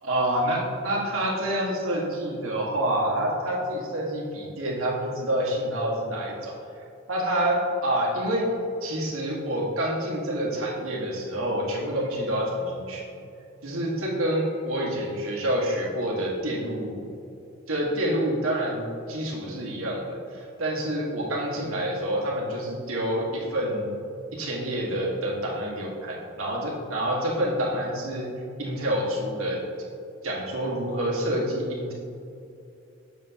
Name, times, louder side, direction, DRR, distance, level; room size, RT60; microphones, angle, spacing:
voice 1, 0.0-6.5 7.1-8.5 8.8-13.1 13.6-17.0 17.7-24.0 24.3-28.3 28.6-29.6 30.2-31.9, right 1 dB, 85° right, -3 dB, 1.7 m, -27 dB
7.6 x 6.9 x 2.9 m, 2.6 s
head